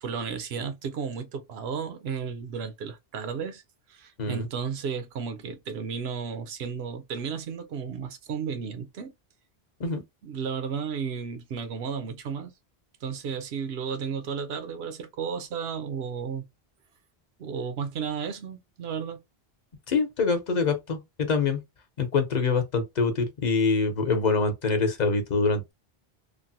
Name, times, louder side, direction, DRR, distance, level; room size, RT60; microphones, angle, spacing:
voice 1, 0.0-3.6 3.9-9.1 10.2-12.5 13.0-16.5 17.4-19.2, right 6 dB, 85° right, 0.9 m, -33 dB
voice 2, 19.9-21.6 22.0-25.7, left 4 dB, 45° left, 0.8 m, -25 dB
3.2 x 2.1 x 2.7 m
omnidirectional pair, 1.0 m